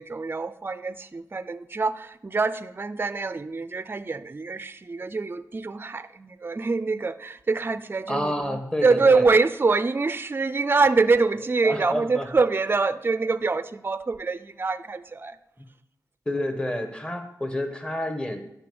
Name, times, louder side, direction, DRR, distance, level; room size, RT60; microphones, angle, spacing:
voice 1, 0.0-15.4, right 4 dB, 35° right, 0.4 m, -25 dB
voice 2, 8.1-9.3 11.6-12.2 16.3-18.4, left 1 dB, 15° left, 1.3 m, -29 dB
10.0 x 5.6 x 6.9 m
wide cardioid pair, 75°, 7 cm